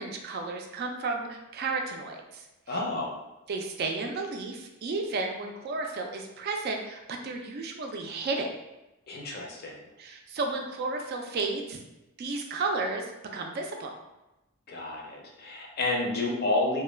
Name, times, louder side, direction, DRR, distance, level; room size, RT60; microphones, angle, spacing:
voice 1, 0.0-2.8 3.5-8.5 10.0-11.8 12.2-13.1 13.3-13.9, right 3 dB, 45° right, 2 dB, 0.3 m, -33 dB
voice 2, 2.7-3.2 9.1-9.8 14.7-16.8, left 2 dB, 45° left, -1 dB, 0.5 m, -30 dB
2.2 x 2.2 x 3.2 m, 0.98 s
head